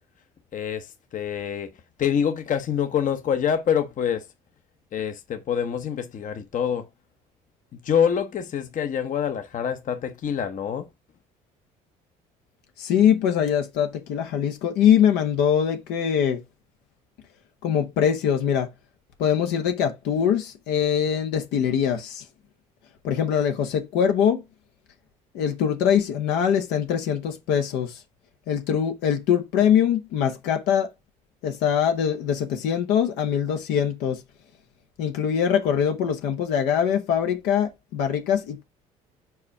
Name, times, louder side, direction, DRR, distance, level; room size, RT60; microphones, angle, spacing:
voice 1, 0.5-1.7 2.0-4.3 4.9-6.9 7.7-10.9, left 8 dB, 50° left, 0.9 m, -26 dB
voice 2, 12.8-16.4 17.6-18.7 19.2-22.3 23.0-24.4 25.3-28.0 28.5-30.9 31.4-34.2 35.0-38.6, left 8 dB, 75° left, 0.9 m, -23 dB
4.8 x 4.4 x 4.7 m
supercardioid pair, 70°, 18 cm